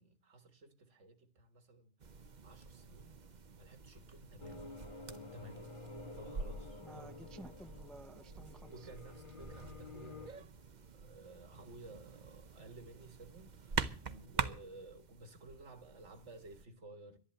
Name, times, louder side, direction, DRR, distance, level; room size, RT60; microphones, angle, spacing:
voice 1, 0.0-1.9 2.4-3.1 3.6-4.7 5.3-5.7 6.1-7.2 8.7-10.5 10.9-17.2, right 2 dB, 80° right, 2.1 m, -55 dB
sound 1, 2.0-16.6, right 5 dB, 45° right, 0.9 m, -45 dB
sound 2, 4.4-10.3, left 2 dB, 45° left, 2.0 m, -51 dB
voice 2, 6.8-8.9, right 1 dB, ahead, 0.4 m, -54 dB
12.0 x 11.0 x 8.0 m
omnidirectional pair, 1.2 m